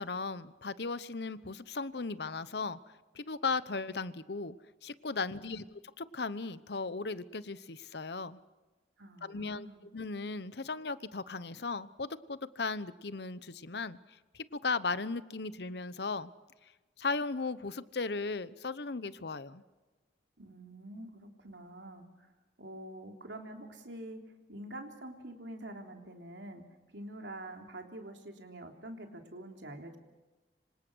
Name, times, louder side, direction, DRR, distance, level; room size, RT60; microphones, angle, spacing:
voice 1, 0.0-2.8 3.1-4.5 4.8-8.4 9.2-9.7 9.9-14.0 14.3-16.3 17.0-19.6, left 4 dB, 65° left, 15 dB, 0.9 m, -36 dB
voice 2, 5.2-5.6 9.0-9.8 20.4-22.3 22.6-24.2 24.5-26.6 26.9-30.0, right 1 dB, 90° right, 3 dB, 3.4 m, -46 dB
26.0 x 26.0 x 6.3 m, 1.2 s
head